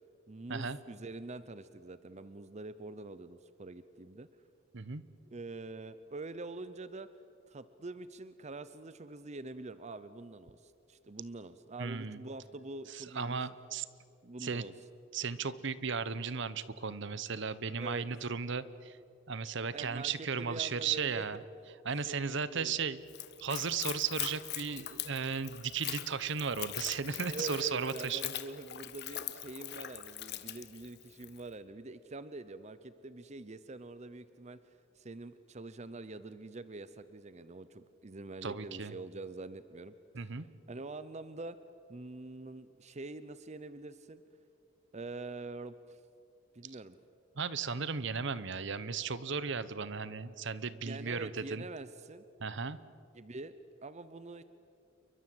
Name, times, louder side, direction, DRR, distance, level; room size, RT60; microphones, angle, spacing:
voice 1, 0.3-4.3 5.3-7.1 7.5-13.5 14.2-14.7 17.8-18.1 19.7-21.2 21.9-22.8 27.3-39.9 40.2-40.3 40.7-41.6 41.9-44.2 44.9-46.0 46.5-47.0 50.7-52.2 53.1-54.4, right 2 dB, 35° right, 13 dB, 0.7 m, -45 dB
voice 2, 11.8-12.2 12.9-13.8 14.4-14.6 15.1-19.0 19.3-21.4 21.8-23.0 23.4-28.3 38.4-38.9 40.1-40.4 46.6-46.8 47.4-51.6 52.4-52.8, right 5 dB, 60° right, 16 dB, 1.0 m, -35 dB
Splash splatter / Trickle dribble, 23.1-31.4, left 12 dB, 55° left, 1.4 m, -42 dB
29.0 x 23.0 x 7.9 m, 2.6 s
head